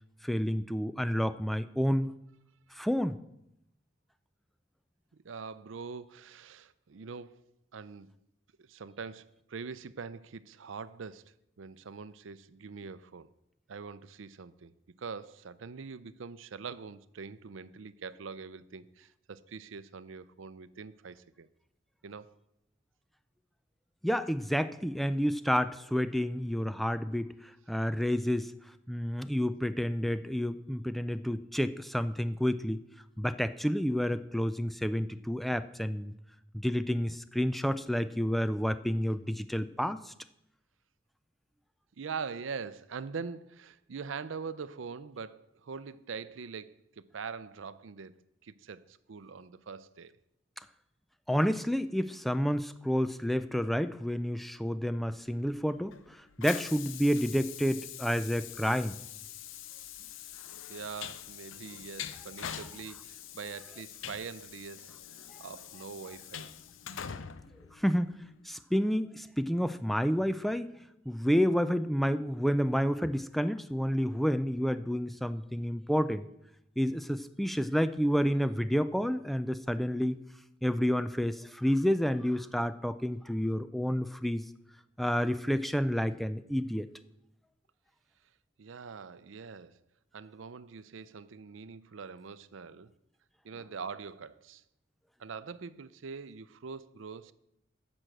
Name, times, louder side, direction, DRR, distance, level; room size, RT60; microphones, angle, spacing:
voice 1, 0.2-2.1 2.7-3.2 24.0-28.5 28.9-32.8 33.2-36.1 36.6-40.1 51.3-59.0 67.7-68.2 68.5-70.7 71.1-76.3 76.8-80.2 80.6-84.4 85.0-86.9, equal, ahead, 0.3 m, -30 dB
voice 2, 5.1-7.4 7.7-8.1 8.6-13.3 13.7-14.7 15.0-21.5 22.0-22.3 42.0-48.1 48.4-50.1 60.7-66.5 88.6-89.8 90.1-92.9 93.4-94.6 95.2-97.3, right 5 dB, 85° right, 0.5 m, -43 dB
Train, 55.3-68.4, left 9 dB, 85° left, 0.6 m, -44 dB
10.0 x 6.2 x 7.7 m
head